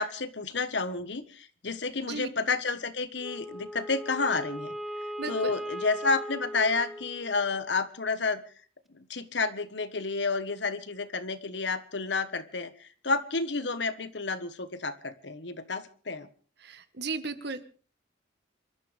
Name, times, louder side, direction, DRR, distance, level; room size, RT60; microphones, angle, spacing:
voice 1, 0.0-4.7 5.3-8.4 8.9-16.3, left 4 dB, 65° left, 12 dB, 1.4 m, -30 dB
Wind instrument woodwind instrument, 3.2-7.6, equal, ahead, 0.7 m, -39 dB
voice 2, 5.2-5.5 16.6-17.6, right 4 dB, 60° right, 11 dB, 1.5 m, -35 dB
27.0 x 13.5 x 3.5 m, 0.40 s
head